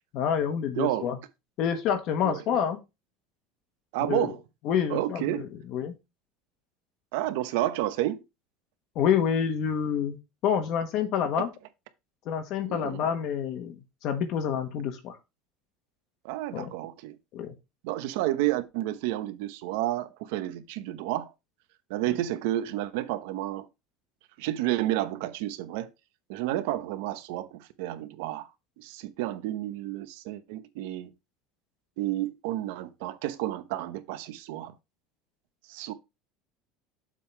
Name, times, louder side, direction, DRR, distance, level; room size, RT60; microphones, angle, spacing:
voice 1, 0.1-1.2 1.6-2.8 4.1-4.3 4.6-5.9 8.9-11.5 12.2-15.2 16.5-16.7 17.3-17.5, left 8 dB, 45° left, 1.2 m, -28 dB
voice 2, 0.8-1.1 2.2-2.4 3.9-4.4 4.9-5.5 7.1-8.2 12.7-13.0 16.2-17.2 17.8-21.3 21.9-23.7 24.4-25.9 26.3-28.5 28.8-31.1 32.0-34.7 35.7-35.9, right 14 dB, 75° right, 0.9 m, -30 dB
7.5 x 3.7 x 5.6 m
cardioid pair, 175°, 0 cm